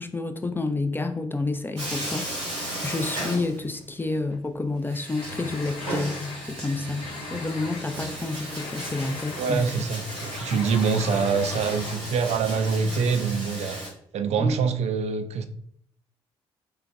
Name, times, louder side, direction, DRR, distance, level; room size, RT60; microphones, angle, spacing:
voice 1, 0.0-2.6 2.8-9.6 10.5-10.7 14.4-14.6, left 3 dB, 15° left, 8 dB, 0.4 m, -29 dB
Bathtub (filling or washing), 1.8-4.0 4.3-4.4 4.8-13.9, right 1 dB, 85° right, 1.3 m, -35 dB
sound 1, 5.1-12.0, left 5 dB, 65° left, 0.8 m, -41 dB
voice 2, 9.4-13.8 14.1-15.4, right 5 dB, 50° right, 8 dB, 0.4 m, -25 dB
4.4 x 2.2 x 2.6 m, 0.64 s
hypercardioid pair, 45°, 14 cm